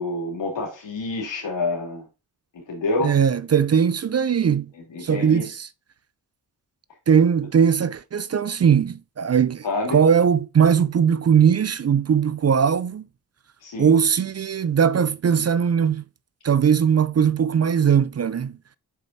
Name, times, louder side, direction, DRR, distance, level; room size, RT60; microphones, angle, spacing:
voice 1, 0.0-2.1 2.5-3.2 4.7-5.5 9.6-10.0 13.6-13.9, left 2 dB, 85° left, 3.1 m, -28 dB
voice 2, 3.0-4.7 5.0-5.7 7.1-13.0 13.8-16.0 16.4-18.5, right 7 dB, 35° right, 0.5 m, -19 dB
7.3 x 5.3 x 2.8 m
cardioid pair, 45°, 43 cm